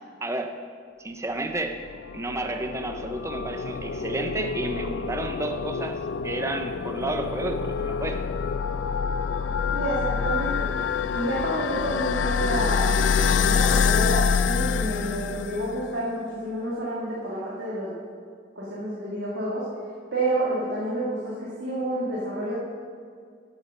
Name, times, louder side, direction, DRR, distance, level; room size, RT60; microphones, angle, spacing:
voice 1, 0.2-0.6 1.0-1.8 2.1-8.3, right 2 dB, 15° right, 6 dB, 0.6 m, -31 dB
sound 1, 1.7-15.8, left 6 dB, 80° left, 0.4 m, -26 dB
voice 2, 9.7-10.7 11.1-17.9 18.6-19.7 20.1-22.5, right 1 dB, 75° right, -6 dB, 1.9 m, -29 dB
13.0 x 7.3 x 5.3 m, 2.1 s
head